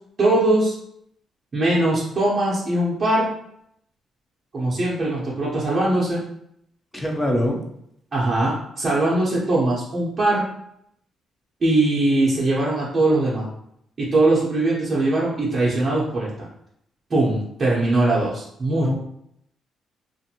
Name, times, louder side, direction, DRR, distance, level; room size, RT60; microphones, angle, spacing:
voice 1, 0.2-0.7 1.5-3.3 4.5-6.2 8.1-10.4 11.6-13.4 14.0-16.5 17.1-19.0, right 2 dB, 40° right, -6 dB, 0.7 m, -21 dB
voice 2, 6.9-7.6 18.8-19.0, left 1 dB, 10° left, 1 dB, 0.6 m, -23 dB
2.5 x 2.5 x 2.8 m, 0.73 s
cardioid pair, 90°, 0 cm